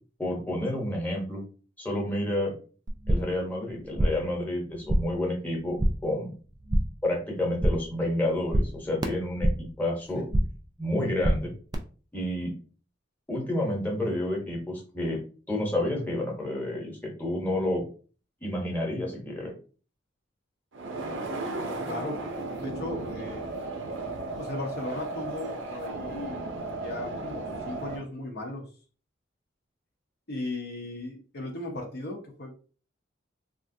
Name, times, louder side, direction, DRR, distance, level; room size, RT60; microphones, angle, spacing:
voice 1, 0.2-1.4 1.8-2.5 3.1-6.3 7.0-10.2 10.8-11.5 12.1-12.5 13.3-15.2 15.5-17.8 18.4-19.5, left 1 dB, 10° left, -1 dB, 0.9 m, -29 dB
sound 1, 2.9-3.4 3.7-4.3 4.6-5.2 5.5-6.1 6.4-7.1 7.4-8.0 8.2-9.8 10.0-10.7 10.9-11.7, right 1 dB, 20° right, 0.3 m, -27 dB
sound 2, 20.7-28.0, right 2 dB, 70° right, 0.5 m, -35 dB
voice 2, 21.9-22.2 22.6-23.4 24.4-28.6 30.3-32.6, left 2 dB, 55° left, 0 dB, 0.7 m, -36 dB
3.4 x 2.4 x 2.6 m, 0.38 s
head